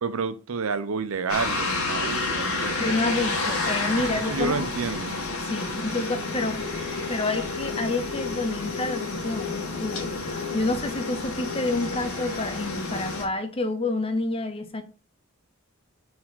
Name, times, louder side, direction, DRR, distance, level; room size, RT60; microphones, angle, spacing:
voice 1, 0.0-2.9 4.0-5.2, right 4 dB, 75° right, 0.6 m, -30 dB
sound 1, 1.3-13.2, left 3 dB, 85° left, 1.8 m, -30 dB
voice 2, 2.8-4.6 5.4-6.7 7.1-14.8, left 2 dB, 25° left, 0.8 m, -28 dB
4.3 x 4.2 x 5.6 m
head